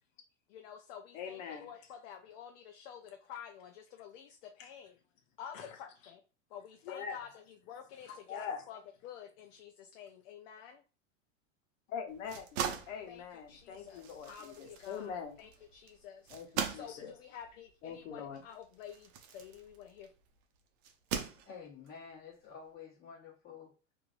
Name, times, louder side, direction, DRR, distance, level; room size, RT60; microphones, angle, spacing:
voice 1, 0.5-5.0 5.4-6.2 6.5-10.8 13.1-16.3 16.7-20.1, left 8 dB, 55° left, 4 dB, 0.5 m, -50 dB
voice 2, 1.1-1.7 5.5-5.7 6.9-7.2 8.1-8.6 11.9-12.6 12.9-15.3 16.3-17.1 17.8-18.4, left 7 dB, 75° left, 3 dB, 0.9 m, -43 dB
sound 1, 12.1-20.2 20.8-21.9, right 7 dB, 60° right, 0.7 m, -41 dB
voice 3, 21.5-23.7, left 6 dB, 25° left, -4 dB, 1.2 m, -50 dB
3.1 x 2.6 x 2.5 m, 0.33 s
supercardioid pair, 145°, 38 cm